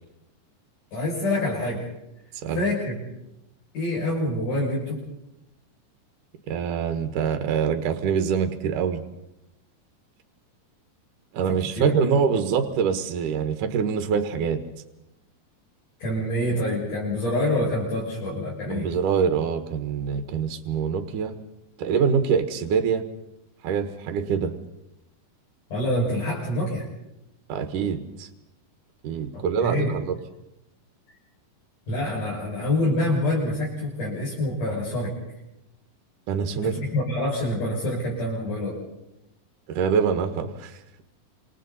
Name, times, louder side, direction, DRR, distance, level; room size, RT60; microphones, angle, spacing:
voice 1, 0.9-1.9 2.5-3.0 3.7-5.0 11.5-12.3 16.0-18.9 25.7-26.9 29.3-30.0 31.9-35.1 36.5-38.8, left 1 dB, 65° left, -6 dB, 7.7 m, -26 dB
voice 2, 2.3-2.6 6.5-9.0 11.3-14.6 18.7-21.3 21.8-23.0 23.6-24.5 27.5-28.3 29.0-30.2 36.3-36.7 39.7-40.8, right 6 dB, 70° right, 7 dB, 2.9 m, -25 dB
29.5 x 27.0 x 4.2 m, 0.88 s
omnidirectional pair, 4.0 m